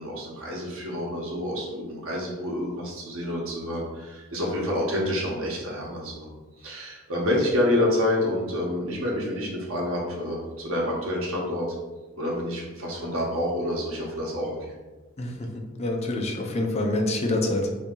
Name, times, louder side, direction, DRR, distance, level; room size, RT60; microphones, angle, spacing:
voice 1, 0.0-6.3 6.6-11.7 12.2-14.6, left 1 dB, 85° right, -3 dB, 0.9 m, -28 dB
voice 2, 15.2-15.5 15.8-17.8, left 1 dB, 30° left, 2 dB, 0.5 m, -26 dB
2.8 x 2.8 x 3.6 m, 1.2 s
head